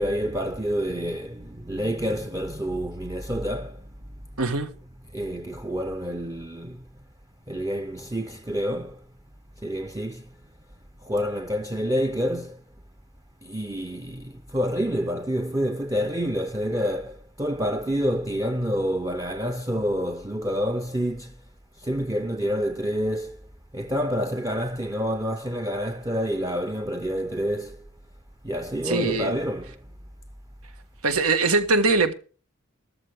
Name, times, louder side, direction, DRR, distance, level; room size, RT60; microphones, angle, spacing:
voice 1, 0.0-3.8 5.1-6.8 7.5-9.0 9.6-10.3 11.0-12.6 13.4-21.3 21.8-23.4 23.7-27.8 28.4-29.8, equal, 15° right, 0.7 m, -28 dB
voice 2, 4.4-4.7 28.8-29.4 31.0-32.1, right 3 dB, 85° right, 1.7 m, -22 dB
14.0 x 13.0 x 3.5 m
head